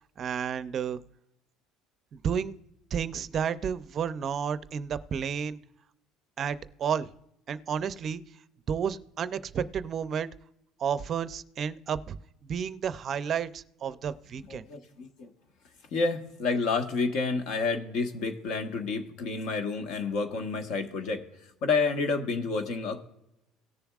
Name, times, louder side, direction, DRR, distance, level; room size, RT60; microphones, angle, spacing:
voice 1, 0.2-1.0 2.1-2.5 2.9-5.6 6.4-7.1 7.5-8.2 8.7-10.3 10.8-12.2 12.4-14.7, right 7 dB, 40° right, 14 dB, 0.5 m, -31 dB
voice 2, 14.5-15.3 15.9-21.2 21.6-23.0, left 4 dB, 65° left, 6 dB, 1.3 m, -29 dB
18.0 x 7.0 x 2.4 m, 0.85 s
cardioid pair, 140°, 0 cm